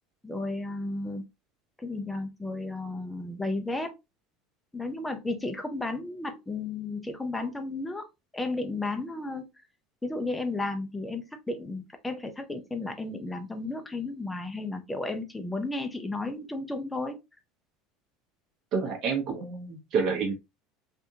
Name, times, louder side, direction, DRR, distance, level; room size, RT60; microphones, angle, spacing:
voice 1, 0.2-1.2 1.8-3.9 4.7-8.1 8.3-9.4 10.0-17.2, left 2 dB, 5° left, 0.4 m, -33 dB
voice 2, 18.7-20.3, right 5 dB, 35° right, 1.0 m, -28 dB
3.5 x 2.6 x 2.7 m
cardioid pair, 180°, 0 cm